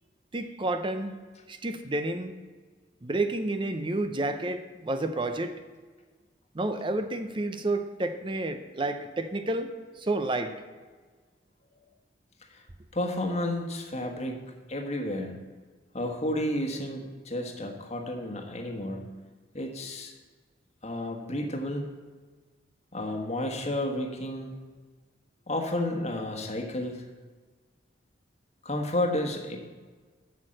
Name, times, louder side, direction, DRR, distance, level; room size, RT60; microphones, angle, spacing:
voice 1, 0.3-1.1 1.5-2.3 3.0-5.5 6.5-10.6, right 2 dB, 25° right, 8 dB, 0.5 m, -30 dB
voice 2, 12.9-14.4 14.7-15.4 15.9-19.0 19.5-20.1 20.8-21.8 22.9-24.5 25.5-27.0 28.6-29.6, left 1 dB, 35° left, 2 dB, 1.3 m, -31 dB
8.2 x 6.5 x 7.6 m, 1.4 s
head